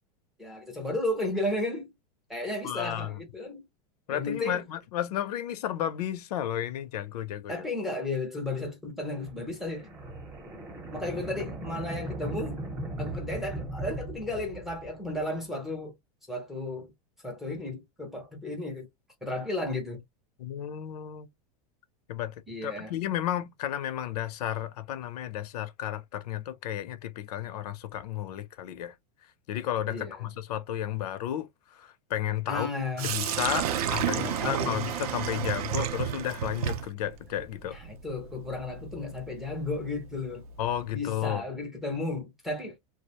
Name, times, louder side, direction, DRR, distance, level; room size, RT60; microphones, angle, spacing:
voice 1, 0.4-1.9 2.3-3.7 4.1-4.6 7.5-9.9 10.9-12.6 13.0-15.9 16.3-16.9 17.2-18.9 19.2-20.0 22.5-22.9 29.9-30.3 32.5-33.1 33.7-33.9 34.1-34.8 37.6-40.4 40.9-42.8, left 2 dB, ahead, 0.4 m, -34 dB
voice 2, 2.6-3.1 4.1-7.6 20.4-21.3 22.1-22.3 22.6-28.9 29.5-32.7 33.0-37.8 40.6-41.4, left 11 dB, 90° left, 0.5 m, -33 dB
sound 1, 9.2-15.1, right 2 dB, 20° right, 0.8 m, -38 dB
Sink (filling or washing), 33.0-40.9, right 9 dB, 75° right, 0.5 m, -33 dB
2.3 x 2.0 x 2.8 m
supercardioid pair, 170°, 19 cm